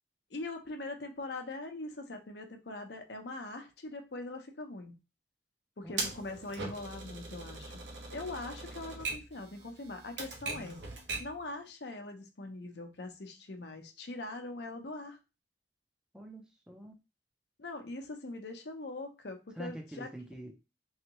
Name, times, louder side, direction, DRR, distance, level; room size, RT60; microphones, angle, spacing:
voice 1, 0.3-4.9 5.8-7.7 8.1-10.8 11.2-15.2 17.6-20.1, left 2 dB, 70° left, 0.8 m, -42 dB
Typewriter, 6.0-11.4, right 3 dB, 80° right, 1.1 m, -40 dB
voice 2, 16.1-16.9 19.6-20.6, equal, 5° right, 0.5 m, -45 dB
3.5 x 3.2 x 3.0 m
head